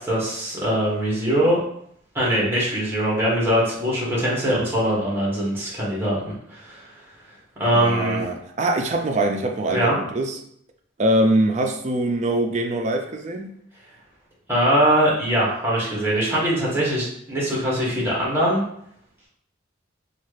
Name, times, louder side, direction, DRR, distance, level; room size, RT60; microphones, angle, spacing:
voice 1, 0.0-1.6 2.1-6.9 7.6-8.2 9.7-9.9 14.5-18.6, equal, 10° right, -6 dB, 1.1 m, -22 dB
voice 2, 7.7-10.4 11.0-13.5, right 1 dB, 35° right, 4 dB, 0.4 m, -23 dB
3.0 x 2.3 x 3.2 m, 0.69 s
head